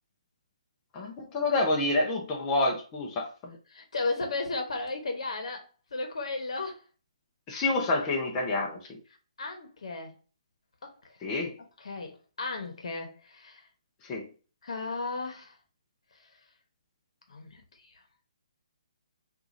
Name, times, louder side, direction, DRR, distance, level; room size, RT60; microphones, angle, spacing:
voice 1, 0.9-3.6 7.5-8.8 11.2-11.5 14.0-14.3, left 2 dB, 20° left, 0.7 m, -28 dB
voice 2, 3.7-6.8 9.4-10.2 10.8-11.5 11.8-13.7 14.6-15.6 16.2-16.3 17.3-18.0, left 3 dB, 65° left, 1.1 m, -35 dB
4.7 x 2.5 x 2.6 m
hypercardioid pair, 150°, 3 cm